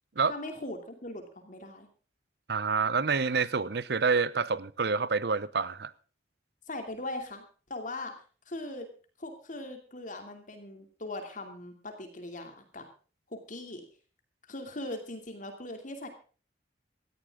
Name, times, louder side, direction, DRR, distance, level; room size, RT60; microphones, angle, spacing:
voice 1, 0.3-1.9 6.7-7.4 7.7-8.1 8.5-8.9 9.2-12.9 13.3-13.9 14.5-16.1, left 2 dB, 45° left, 2.7 m, -40 dB
voice 2, 2.5-5.9, right 5 dB, 65° right, 0.8 m, -27 dB
18.0 x 13.5 x 3.7 m
head